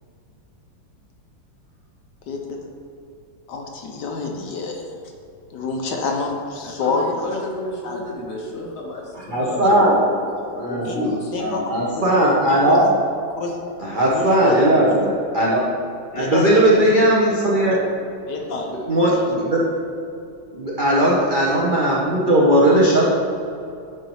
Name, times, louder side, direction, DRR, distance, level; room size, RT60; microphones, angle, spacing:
voice 1, 2.3-2.7 3.5-4.9 5.5-7.4 7.8-8.0 10.8-11.0 11.3-11.6 11.9-12.0 12.6-12.8 13.4-13.6 14.1-14.6 16.2-16.7 17.0-17.1 17.7-17.8 18.3-19.2, left 4 dB, 70° left, 1 dB, 1.1 m, -27 dB
voice 2, 6.6-11.3, left 1 dB, 45° left, -2 dB, 0.9 m, -31 dB
voice 3, 9.1-10.0 10.6-11.1 11.4-12.9 13.8-15.6 16.1-17.8 18.7-19.6 20.5-23.0, right 1 dB, 85° right, -5 dB, 0.4 m, -18 dB
9.3 x 5.2 x 3.0 m, 2.5 s
omnidirectional pair, 2.2 m